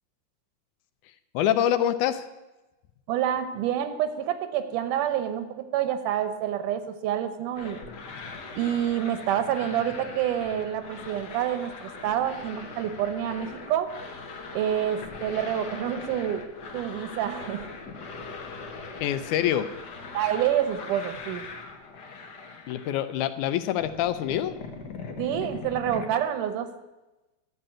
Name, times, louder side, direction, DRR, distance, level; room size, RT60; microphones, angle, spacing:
voice 1, 1.3-2.3 19.0-19.7 22.7-24.5, left 11 dB, 80° left, 11 dB, 2.0 m, -25 dB
voice 2, 3.1-7.8 8.6-13.9 14.5-16.4 16.7-17.6 20.1-21.5 25.2-26.7, right 10 dB, 85° right, 10 dB, 2.5 m, -28 dB
sound 1, 7.5-23.3 23.5-26.1, left 4 dB, 60° left, 1.0 m, -41 dB
12.0 x 6.7 x 8.8 m, 1.1 s
omnidirectional pair, 3.6 m